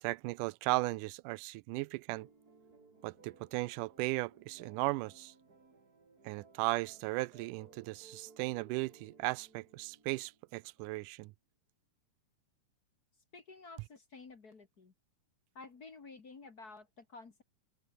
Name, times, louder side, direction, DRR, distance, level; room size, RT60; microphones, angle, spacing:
voice 1, 0.0-2.3 3.0-5.3 6.2-11.3, right 22 dB, 90° right, 2.1 m, -36 dB
sound 1, 2.1-10.8, right 4 dB, 30° right, 3.6 m, -62 dB
voice 2, 13.3-14.9 15.6-17.4, left 3 dB, 35° left, 1.9 m, -52 dB
open air
omnidirectional pair, 3.6 m